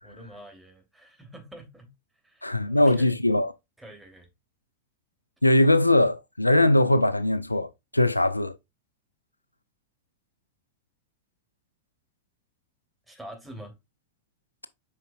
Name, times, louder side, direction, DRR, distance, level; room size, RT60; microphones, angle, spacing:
voice 1, 0.0-1.9 2.2-3.2 3.8-4.3 13.1-13.7, right 1 dB, 5° right, 3.0 m, -46 dB
voice 2, 2.4-3.5 5.4-8.5, left 1 dB, 85° left, 0.5 m, -21 dB
8.4 x 5.8 x 2.4 m
figure-of-eight pair, 90°, 0 cm